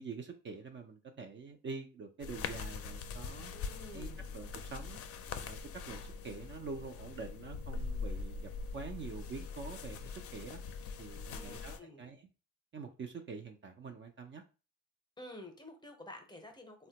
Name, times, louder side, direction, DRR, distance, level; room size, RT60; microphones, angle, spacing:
voice 1, 0.0-3.5 3.9-5.0 5.4-5.6 5.9-10.6 11.0-12.2 12.7-14.4, right 4 dB, 40° right, 5 dB, 0.4 m, -46 dB
sound 1, 2.2-11.8, left 5 dB, 50° left, 0.4 m, -42 dB
voice 2, 3.5-4.3 11.3-12.1 15.2-16.9, left 1 dB, 15° left, 4 dB, 0.7 m, -50 dB
3.3 x 2.2 x 2.8 m, 0.33 s
cardioid pair, 90°, 30 cm